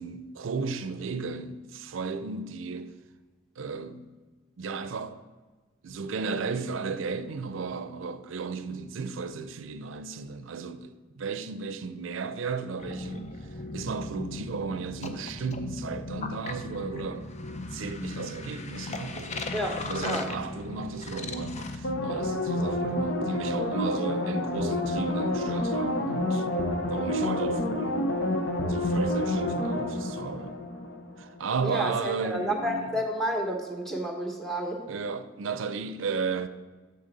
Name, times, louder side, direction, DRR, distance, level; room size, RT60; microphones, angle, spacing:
voice 1, 0.0-2.9 3.6-4.1 4.6-5.1 5.8-13.3 13.7-17.3 17.6-19.5 19.8-26.5 26.9-28.0 28.7-30.6 31.2-32.9 34.9-36.5, right 4 dB, 80° right, 0.5 m, -34 dB
sound 1, 12.8-22.3, left 3 dB, 35° left, 0.5 m, -37 dB
sound 2, 21.8-31.2 31.6-31.7, left 1 dB, 90° left, 0.9 m, -28 dB
voice 2, 31.6-34.8, equal, ahead, 1.0 m, -30 dB
6.8 x 6.5 x 4.0 m
head